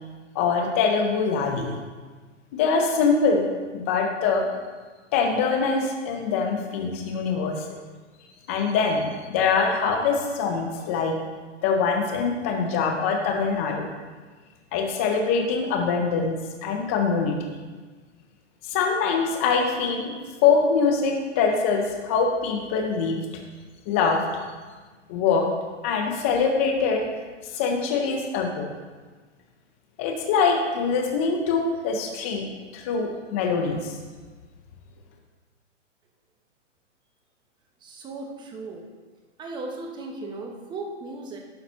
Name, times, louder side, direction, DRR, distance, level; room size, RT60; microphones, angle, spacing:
voice 1, 0.4-1.7 2.5-3.4 3.7-4.5 5.1-7.5 8.5-11.2 11.6-13.9 14.7-16.3 16.6-17.4 18.7-20.1 20.4-23.2 23.9-24.2 25.1-25.5 25.8-27.1 27.5-28.7 30.0-32.4 32.7-34.0, left 5 dB, 10° left, 3 dB, 0.3 m, -23 dB
voice 2, 37.8-38.8 39.4-41.4, right 2 dB, 10° right, 2 dB, 0.8 m, -36 dB
11.5 x 4.1 x 4.3 m, 1.4 s
hypercardioid pair, 135°, 37 cm